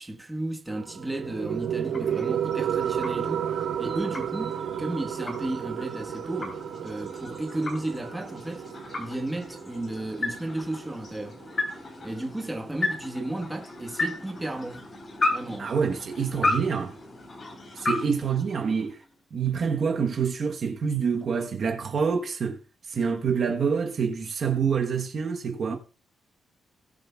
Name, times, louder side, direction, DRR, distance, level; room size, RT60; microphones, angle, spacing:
voice 1, 0.0-8.6 8.9-11.4 12.0-14.9 15.3-15.7 25.7-25.8, right 1 dB, 10° right, 1.3 m, -34 dB
sound 1, 0.7-11.7, right 9 dB, 75° right, 0.7 m, -32 dB
sound 2, 1.4-19.1, left 2 dB, 35° left, 3.9 m, -35 dB
voice 2, 15.6-16.9 17.8-19.0 19.3-22.6 22.9-25.8, right 6 dB, 45° right, 1.1 m, -26 dB
19.5 x 7.6 x 2.3 m
cardioid pair, 145°, 0 cm